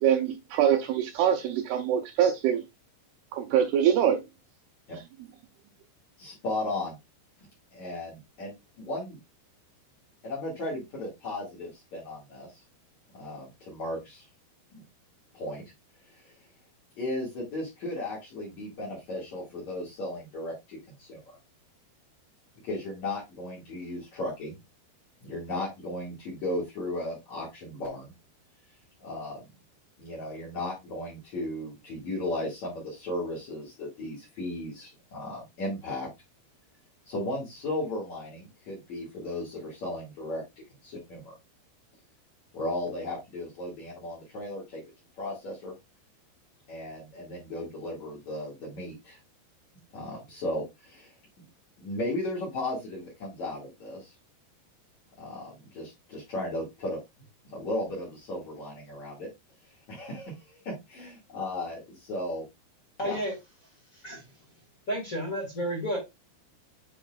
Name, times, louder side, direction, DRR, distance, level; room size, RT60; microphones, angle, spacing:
voice 1, 0.0-2.6 3.3-4.2, right 9 dB, 80° right, 2.5 m, -24 dB
voice 2, 6.2-7.0 7.7-9.2 10.2-12.5 13.1-14.2 14.7-14.8 15.3-15.6 16.1-16.2 17.0-21.2 22.6-24.6 25.2-28.1 29.0-29.5 30.0-36.1 37.1-40.4 40.8-41.4 42.5-44.8 45.2-45.7 46.7-49.2 49.9-51.1 51.8-54.1 55.2-57.0 57.4-59.3 59.9-62.4 63.0-63.2, left 1 dB, 45° left, 3.0 m, -35 dB
voice 3, 63.0-63.3 63.9-64.2 64.9-66.0, equal, 30° left, 1.8 m, -31 dB
8.9 x 4.4 x 2.4 m
omnidirectional pair, 5.1 m